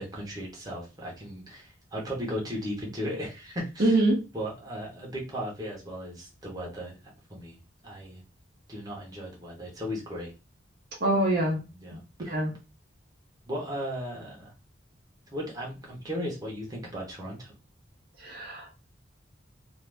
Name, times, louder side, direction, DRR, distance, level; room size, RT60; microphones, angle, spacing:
voice 1, 0.0-4.0 4.3-6.9 7.3-8.2 8.7-10.3 11.8-12.4 13.5-14.5 15.3-17.5, equal, 20° right, -3 dB, 1.0 m, -36 dB
voice 2, 3.8-4.2 11.0-11.6 12.2-12.5 18.2-18.8, right 1 dB, 50° right, 0 dB, 0.7 m, -25 dB
2.7 x 2.6 x 3.3 m, 0.28 s
head